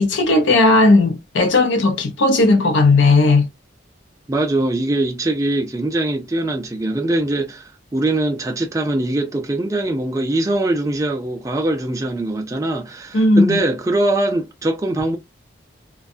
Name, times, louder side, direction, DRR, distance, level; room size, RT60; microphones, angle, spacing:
voice 1, 0.0-3.5 13.1-13.6, left 2 dB, 75° left, 0.5 m, -15 dB
voice 2, 4.3-15.2, right 2 dB, 15° right, 0.4 m, -22 dB
2.5 x 2.2 x 2.5 m
head